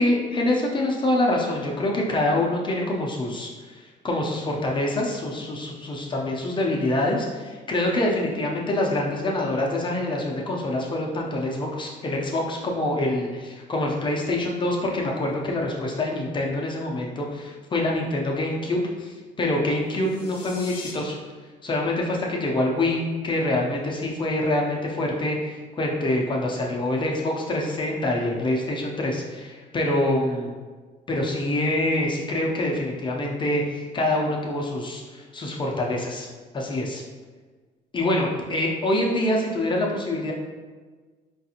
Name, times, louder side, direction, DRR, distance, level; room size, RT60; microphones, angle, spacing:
voice 1, 0.0-21.2 21.6-30.5 31.1-36.3 36.5-37.0 37.9-40.3, left 1 dB, 30° left, -2 dB, 0.5 m, -25 dB
sound 1, 19.9-20.9, left 5 dB, 70° left, 0.7 m, -42 dB
4.5 x 2.4 x 2.8 m, 1.4 s
cardioid pair, 110°, 17 cm